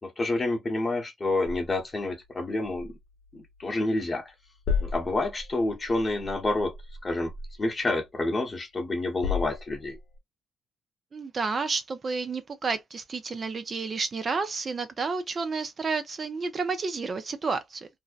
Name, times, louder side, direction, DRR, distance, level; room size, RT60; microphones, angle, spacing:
voice 1, 0.0-2.9 3.3-4.3 4.8-6.7 7.0-7.3 7.6-10.0, left 2 dB, 30° left, 0.9 m, -28 dB
sound 1, 1.4-4.0 4.3-8.5 8.9-10.2, left 5 dB, 80° left, 0.7 m, -36 dB
voice 2, 11.1-17.9, right 4 dB, 40° right, 0.5 m, -31 dB
2.6 x 2.0 x 2.3 m
cardioid pair, 90°, 0 cm